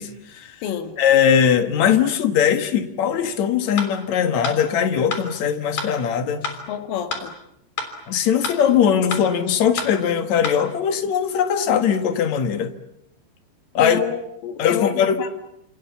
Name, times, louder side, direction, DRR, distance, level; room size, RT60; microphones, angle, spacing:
voice 1, 0.0-0.6 1.0-6.5 8.1-12.7 13.7-14.0 14.6-15.3, left 8 dB, 65° left, 1.8 m, -20 dB
voice 2, 0.6-0.9 6.7-7.3 13.8-15.3, left 9 dB, 85° left, 4.5 m, -28 dB
sound 1, 3.8-3.9 4.4-4.6 5.1-5.2 5.8-5.9 6.4-6.6 7.1-7.2 7.8-7.9 8.4-8.6 9.1-9.2 9.8-9.9 10.4-10.6, left 5 dB, 45° left, 4.7 m, -27 dB
30.0 x 27.5 x 7.2 m
omnidirectional pair, 5.5 m